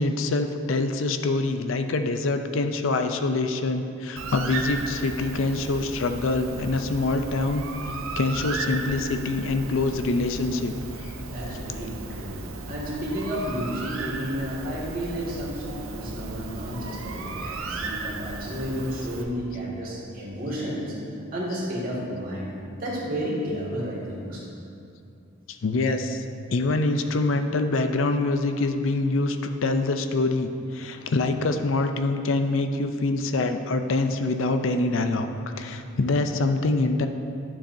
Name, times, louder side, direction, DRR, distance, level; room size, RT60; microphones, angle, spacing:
voice 1, 0.0-7.7 8.2-10.7 11.0-11.2 25.6-35.3 35.6-37.1, left 2 dB, 70° left, 7 dB, 0.5 m, -25 dB
Bird, 4.2-19.2, right 3 dB, 80° right, 0.6 m, -35 dB
voice 2, 11.3-21.0 21.3-22.5 22.8-24.5, equal, 45° right, -5 dB, 2.0 m, -32 dB
11.5 x 7.2 x 2.7 m, 2.6 s
head